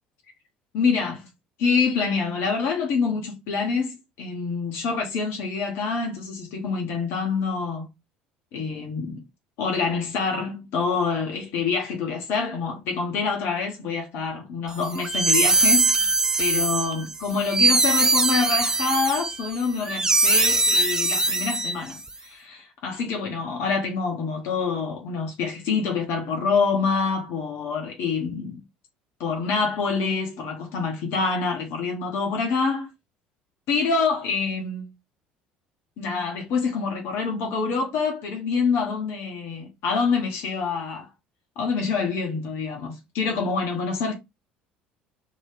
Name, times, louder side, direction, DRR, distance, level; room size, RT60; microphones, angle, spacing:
voice 1, 0.7-1.3 1.6-7.9 8.5-9.2 9.6-15.9 16.4-28.6 29.2-32.9 33.7-34.9 36.0-41.1 41.6-44.1, left 5 dB, 55° left, 0.9 m, -26 dB
sound 1, 14.8-22.1, right 3 dB, 10° right, 0.4 m, -22 dB
2.8 x 2.8 x 3.2 m
figure-of-eight pair, 60°, 5 cm